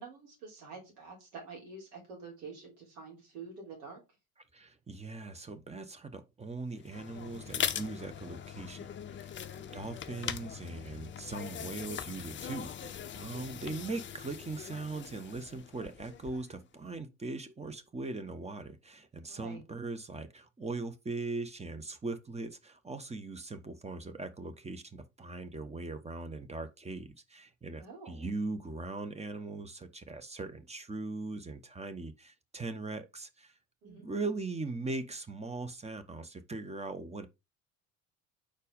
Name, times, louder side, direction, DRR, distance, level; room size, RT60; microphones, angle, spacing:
voice 1, 0.0-4.0 9.5-9.8 19.3-19.6 27.8-28.3 33.8-34.1, right 4 dB, 70° right, 3.6 m, -47 dB
voice 2, 4.5-9.3 9.7-33.5 33.8-37.3, right 3 dB, 15° right, 1.0 m, -40 dB
sound 1, 6.7-16.6, left 9 dB, 25° left, 0.6 m, -41 dB
5.0 x 4.4 x 5.2 m
figure-of-eight pair, 60°, 44 cm